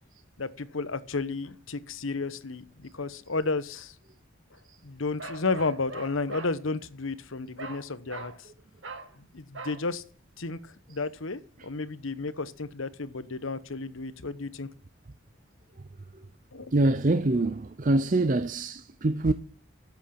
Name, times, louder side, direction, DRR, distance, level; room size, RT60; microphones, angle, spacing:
voice 1, 0.4-3.9 4.8-8.5 9.1-10.0 10.4-14.7 16.5-16.7, left 3 dB, 80° left, 1.0 m, -32 dB
Bark, 5.2-6.6 7.6-7.8 8.1-8.4 8.8-9.1 9.5-9.8, right 3 dB, 65° right, 2.2 m, -41 dB
voice 2, 16.7-19.3, right 2 dB, 40° right, 0.5 m, -24 dB
13.5 x 8.3 x 5.9 m
head